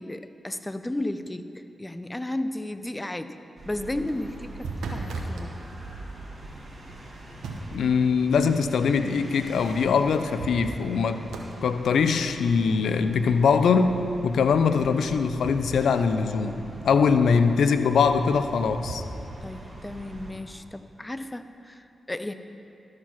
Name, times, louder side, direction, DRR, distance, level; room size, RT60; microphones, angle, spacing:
voice 1, 0.0-3.3 3.6-5.6 19.4-22.3, left 1 dB, 15° left, 10 dB, 0.5 m, -34 dB
sound 1, 3.6-20.3, right 2 dB, 40° right, 1.8 m, -44 dB
sound 2, 4.1-5.5 7.0-7.9 9.7-9.8 10.1-11.0 11.3-11.6 14.7-16.2 18.1-19.1, right 3 dB, 85° right, 0.9 m, -37 dB
voice 2, 7.7-11.2 11.6-19.0, left 5 dB, 80° left, 9 dB, 0.4 m, -22 dB
12.5 x 4.8 x 5.8 m, 2.9 s
supercardioid pair, 45°, 0 cm